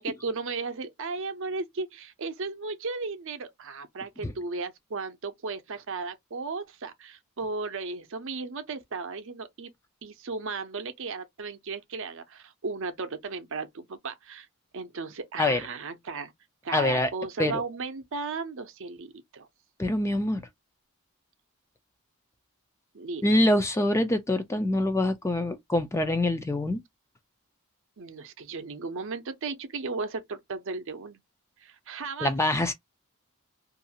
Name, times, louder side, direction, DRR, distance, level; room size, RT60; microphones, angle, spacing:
voice 1, 0.0-9.7 10.0-14.5 14.7-16.3 16.6-19.5 22.9-23.3 28.0-31.2 31.6-32.4, right 4 dB, 60° right, 0.6 m, -35 dB
voice 2, 16.7-17.1 17.4-17.6 19.8-20.4 23.2-26.8 32.2-32.7, left 1 dB, 15° left, 0.3 m, -25 dB
2.5 x 2.4 x 2.7 m
head